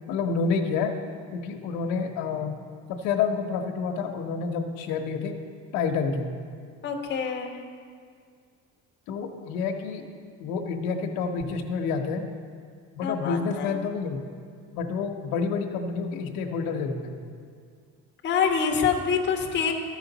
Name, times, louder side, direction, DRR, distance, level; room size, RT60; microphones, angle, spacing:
voice 1, 0.1-0.9 1.3-2.6 2.9-5.3 5.7-6.3 9.1-10.1 10.4-12.3 13.0-14.2 14.7-17.1, left 5 dB, 85° left, 3 dB, 0.9 m, -28 dB
voice 2, 6.8-7.7 13.0-13.7 18.2-19.7, left 6 dB, 35° left, 2 dB, 0.8 m, -26 dB
14.0 x 5.0 x 4.0 m, 2.1 s
cardioid pair, 155°, 34 cm